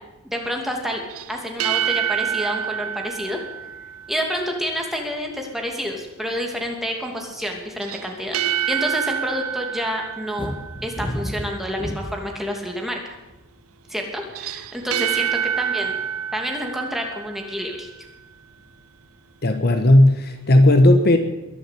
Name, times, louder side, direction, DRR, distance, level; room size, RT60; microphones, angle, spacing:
voice 1, 0.2-1.0 1.3-3.4 4.1-8.4 8.7-10.6 10.8-13.0 13.9-15.9 16.3-17.9, equal, ahead, 1 dB, 2.6 m, -28 dB
sound 1, 1.1-4.4 7.8-11.1 14.2-17.8, right 9 dB, 70° right, 0.5 m, -27 dB
sound 2, 10.4-12.3 13.0-13.4, equal, 25° left, 2.2 m, -30 dB
voice 2, 19.4-21.2, left 1 dB, 45° left, 7 dB, 1.3 m, -14 dB
22.0 x 7.7 x 8.4 m, 1.0 s
head